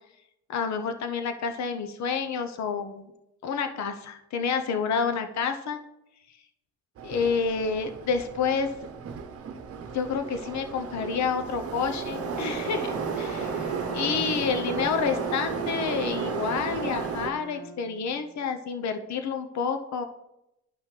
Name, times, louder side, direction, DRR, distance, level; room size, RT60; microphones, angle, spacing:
voice 1, 0.5-3.1 3.4-5.8 7.0-8.7 9.9-20.0, left 6 dB, 65° left, 7 dB, 0.9 m, -29 dB
Subway metro underground, 7.0-17.3, right 6 dB, 50° right, 0.9 m, -34 dB
Bowed string instrument, 12.1-18.2, right 1 dB, 85° left, 1.4 m, -40 dB
10.5 x 5.7 x 3.3 m, 0.85 s
cardioid pair, 90°, 30 cm